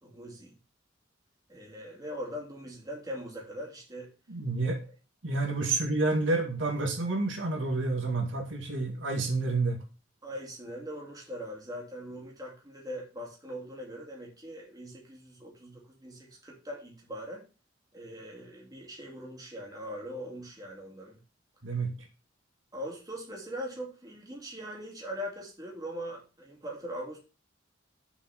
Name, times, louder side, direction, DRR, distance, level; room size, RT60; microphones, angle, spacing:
voice 1, 0.0-0.5 1.5-4.1 4.6-4.8 5.7-5.8 10.2-17.4 17.9-21.2 22.7-27.2, equal, 20° right, -2 dB, 2.5 m, -41 dB
voice 2, 4.3-4.8 5.2-9.8 21.6-21.9, right 3 dB, 80° right, 2 dB, 2.0 m, -29 dB
7.1 x 4.9 x 5.8 m, 0.32 s
head